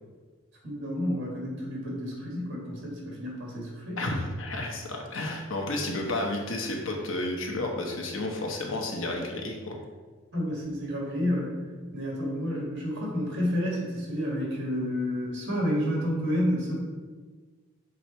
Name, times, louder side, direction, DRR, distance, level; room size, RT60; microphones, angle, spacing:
voice 1, 0.6-4.2 10.3-11.5 11.9-16.7, equal, 50° right, -3 dB, 2.1 m, -30 dB
voice 2, 4.0-9.8, left 2 dB, 65° left, 1 dB, 1.1 m, -31 dB
7.1 x 3.9 x 4.4 m, 1.4 s
head